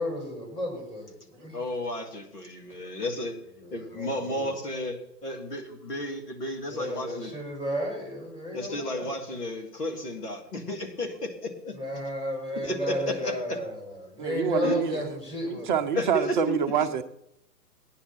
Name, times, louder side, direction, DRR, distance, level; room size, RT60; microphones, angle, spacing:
voice 1, 0.0-1.6 3.6-4.5 6.7-9.1 11.7-15.8, left 1 dB, 10° left, 5.4 m, -33 dB
voice 2, 1.5-3.3 3.7-7.3 8.5-11.7 12.6-13.6 14.6-14.8 15.9-16.6, left 1 dB, 70° left, 3.3 m, -33 dB
voice 3, 14.2-15.1 15.5-17.0, right 7 dB, 30° right, 0.7 m, -26 dB
18.5 x 9.9 x 4.4 m
figure-of-eight pair, 125°, 49 cm